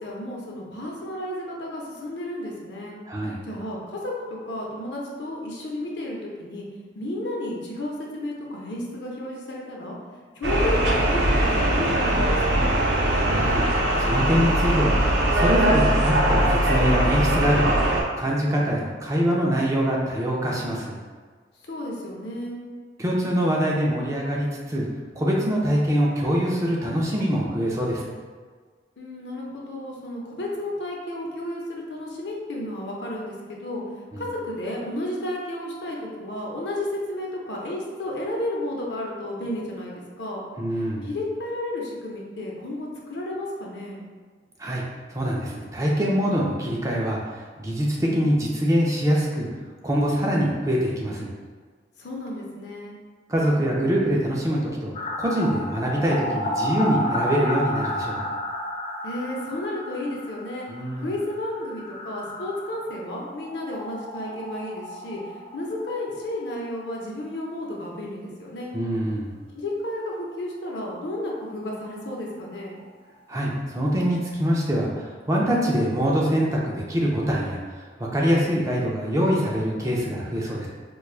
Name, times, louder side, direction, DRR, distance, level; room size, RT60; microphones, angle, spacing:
voice 1, 0.0-3.0 3.5-6.6 6.9-10.0 10.3-12.7 21.6-22.6 29.0-33.8 34.2-40.4 40.7-44.0 52.0-53.0 59.0-60.7 61.0-68.7 69.5-72.8, left 1 dB, 75° left, -2 dB, 0.7 m, -32 dB
voice 2, 3.1-3.5 13.3-13.7 14.0-17.8 18.2-21.0 23.0-24.9 25.2-28.0 34.1-34.2 40.6-41.1 44.6-44.8 45.1-49.5 49.8-51.3 53.3-54.9 55.2-58.2 60.7-61.1 68.7-69.3 73.3-80.7, equal, 20° right, -3 dB, 0.5 m, -24 dB
sound 1, 10.4-18.0, right 1 dB, 70° right, 0.6 m, -21 dB
sound 2, 54.9-66.5 66.8-66.9 67.2-67.3 70.3-70.4 70.7-70.8 71.0-72.8 73.1-73.2, left 1 dB, 35° left, 0.4 m, -32 dB
4.5 x 2.3 x 2.4 m, 1.5 s
head